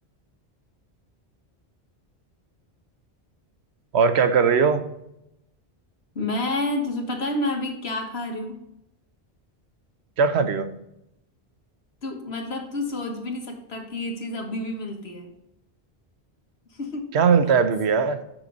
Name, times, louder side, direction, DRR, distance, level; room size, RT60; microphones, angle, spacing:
voice 1, 3.9-4.8 10.2-10.7 17.1-18.2, right 6 dB, 85° right, 10 dB, 1.0 m, -19 dB
voice 2, 6.1-8.6 12.0-15.3 16.7-17.1, left 2 dB, 75° left, 2 dB, 1.7 m, -29 dB
7.8 x 6.0 x 3.9 m, 0.83 s
omnidirectional pair, 1.1 m